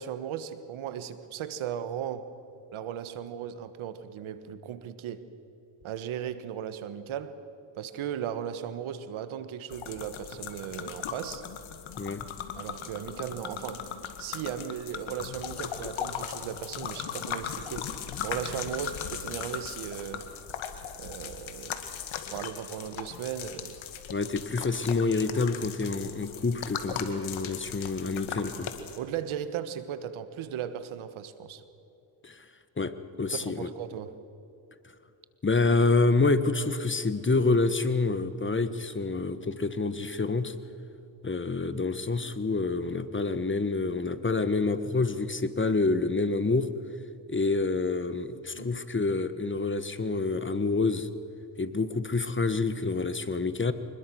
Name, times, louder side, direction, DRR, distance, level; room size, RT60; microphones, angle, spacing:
voice 1, 0.0-2.3 2.7-5.3 5.8-7.4 7.7-11.4 12.6-13.9 14.2-17.9 18.2-20.3 21.0-21.8 22.3-23.8 29.0-31.6 33.3-34.2 48.5-48.7, right 9 dB, 75° right, 12 dB, 1.5 m, -36 dB
sound 1, 9.7-29.0, left 8 dB, 70° left, 2.2 m, -38 dB
voice 2, 24.1-28.7 32.2-32.4 32.8-32.9 33.2-33.7 35.4-40.5 41.2-46.7 47.3-51.1 51.6-53.7, left 3 dB, 25° left, 12 dB, 1.5 m, -27 dB
25.0 x 20.5 x 6.3 m, 2.9 s
supercardioid pair, 65°, 48 cm